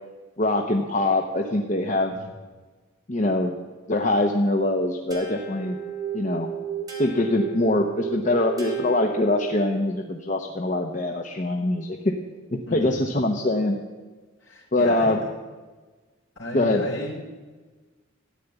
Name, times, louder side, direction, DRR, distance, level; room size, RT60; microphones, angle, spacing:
voice 1, 0.4-2.2 3.1-3.5 3.9-5.8 6.1-6.5 7.0-12.1 12.5-13.8 14.7-15.2 16.5-16.8, left 2 dB, 40° left, 3 dB, 0.9 m, -23 dB
sound 1, 5.1-9.9, right 8 dB, 20° right, 2.6 m, -33 dB
voice 2, 12.7-13.0 14.4-15.3 16.4-17.2, left 1 dB, 60° left, 0 dB, 3.6 m, -33 dB
13.5 x 10.0 x 8.1 m, 1.3 s
head